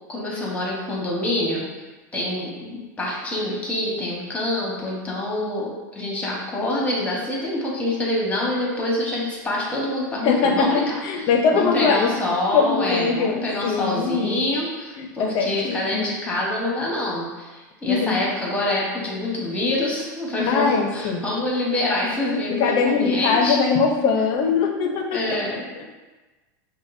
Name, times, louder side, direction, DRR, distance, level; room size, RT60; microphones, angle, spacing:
voice 1, 0.1-1.7 2.1-10.9 11.5-23.6 25.1-25.6, left 1 dB, 15° left, -3 dB, 1.0 m, -26 dB
voice 2, 10.2-12.1 12.5-14.4 15.0-16.1 17.9-18.2 20.5-21.3 22.5-25.8, left 5 dB, 45° left, 3 dB, 0.6 m, -22 dB
5.1 x 2.2 x 2.6 m, 1.2 s
supercardioid pair, 120°, 10 cm